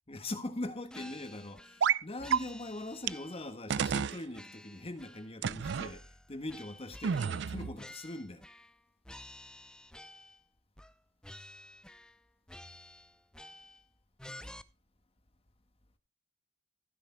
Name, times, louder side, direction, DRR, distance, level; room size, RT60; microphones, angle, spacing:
voice 1, 0.1-8.4, left 2 dB, 30° left, 1.5 m, -41 dB
sound 1, 0.9-1.9 2.2-3.6 3.9-5.3 5.6-8.8 9.0-10.4 10.8-11.0 11.2-12.2 12.5-13.9 14.2-14.6, left 1 dB, 5° left, 0.5 m, -51 dB
sound 2, 1.8-2.0 2.3-2.4 3.1-3.2 3.7-4.2 5.4-5.9 7.0-7.8, right 7 dB, 65° right, 0.4 m, -30 dB
16.0 x 10.0 x 2.2 m
head